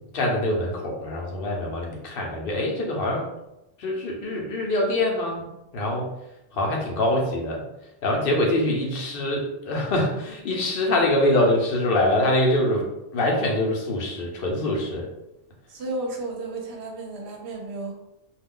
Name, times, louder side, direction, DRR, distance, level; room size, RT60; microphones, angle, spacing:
voice 1, 0.1-3.3 3.8-6.1 6.5-7.6 8.0-15.1, left 1 dB, 55° left, -1 dB, 0.8 m, -24 dB
voice 2, 15.7-17.9, right 2 dB, 60° right, 1 dB, 0.9 m, -33 dB
2.4 x 2.2 x 3.6 m, 0.92 s
omnidirectional pair, 1.3 m